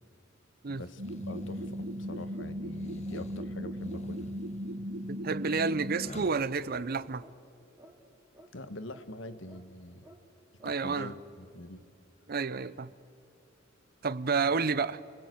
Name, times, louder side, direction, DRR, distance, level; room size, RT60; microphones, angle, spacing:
voice 1, 0.7-4.3 8.5-10.1 10.6-11.8, left 2 dB, 70° left, 1.4 m, -44 dB
sound 1, 1.0-2.3 2.7-7.1, left 1 dB, 35° left, 1.6 m, -50 dB
sound 2, 1.0-6.1, equal, 80° right, 1.5 m, -37 dB
voice 2, 5.1-7.2 10.6-11.1 12.3-12.9 14.0-15.0, right 4 dB, 50° right, 0.6 m, -30 dB
sound 3, 7.2-7.4 7.8-8.0 8.3-8.5 8.9-9.1 9.5-9.6 10.0-10.2 10.6-10.8, right 1 dB, 15° right, 2.6 m, -55 dB
29.5 x 19.5 x 7.9 m
head